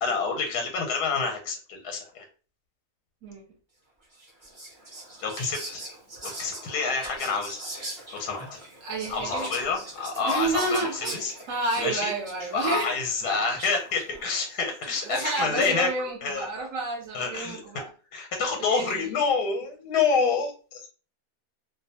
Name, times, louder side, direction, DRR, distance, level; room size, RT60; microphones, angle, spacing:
voice 1, 0.0-2.2 5.2-5.8 6.2-7.6 8.1-8.5 9.1-11.3 11.8-12.1 12.5-15.9 16.2-16.5 17.1-17.6 18.1-20.9, left 5 dB, 90° left, 3 dB, 1.2 m, -27 dB
Whispering, 4.1-15.4, right 1 dB, 30° right, 0.6 m, -41 dB
voice 2, 8.8-9.5 10.2-13.4 15.0-17.9 18.6-19.2, right 3 dB, 60° right, 0 dB, 1.0 m, -30 dB
2.5 x 2.3 x 2.7 m, 0.37 s
omnidirectional pair, 1.7 m